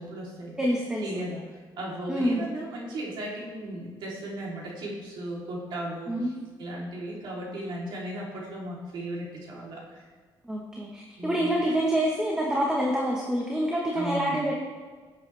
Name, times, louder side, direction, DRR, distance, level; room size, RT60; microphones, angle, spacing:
voice 1, 0.0-0.6 1.0-1.4 1.8-6.3 6.6-10.0 11.2-11.6 13.9-14.4, right 1 dB, 70° right, -4 dB, 3.3 m, -36 dB
voice 2, 0.6-1.2 2.1-2.4 6.1-6.3 10.5-14.5, right 1 dB, 10° right, -2 dB, 1.2 m, -27 dB
16.5 x 8.2 x 3.4 m, 1.5 s
cardioid pair, 160°, 8 cm